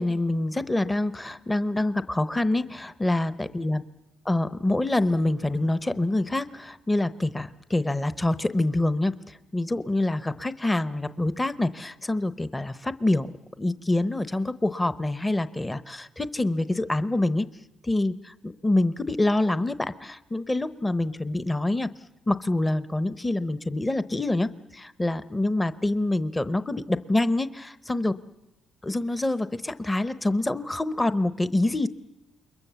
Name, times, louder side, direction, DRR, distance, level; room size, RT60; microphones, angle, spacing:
voice 1, 0.0-3.8 4.3-9.1 9.5-13.3 13.6-17.4 17.8-21.9 22.3-28.1 28.8-31.9, left 2 dB, 15° left, 13 dB, 0.8 m, -26 dB
28.5 x 22.0 x 7.0 m, 0.98 s
cardioid pair, 90°, 0 cm